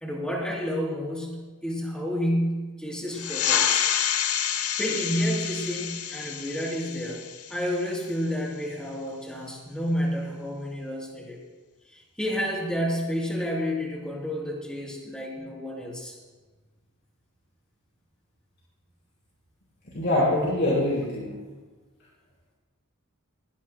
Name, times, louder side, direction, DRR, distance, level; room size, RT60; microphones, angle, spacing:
voice 1, 0.0-3.8 4.6-7.2 7.5-11.4 11.9-16.2, equal, 5° left, -2 dB, 3.3 m, -30 dB
sound 1, 3.1-8.2, left 9 dB, 80° left, 0.9 m, -28 dB
voice 2, 19.9-21.3, left 1 dB, 50° left, -8 dB, 4.4 m, -24 dB
22.0 x 16.5 x 2.2 m, 1.3 s
head